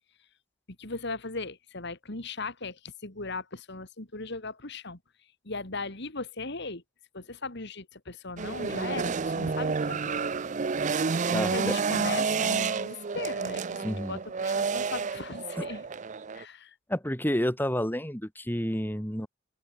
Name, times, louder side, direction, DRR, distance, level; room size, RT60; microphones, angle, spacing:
voice 1, 0.8-6.8 7.1-10.2 11.3-15.9 16.3-16.8, left 3 dB, 55° left, 2.9 m, -38 dB
sound 1, 8.4-16.4, right 5 dB, 35° right, 0.5 m, -30 dB
voice 2, 11.3-11.7 13.8-14.2 15.6-15.7 16.9-19.3, equal, 10° left, 3.7 m, -30 dB
open air
head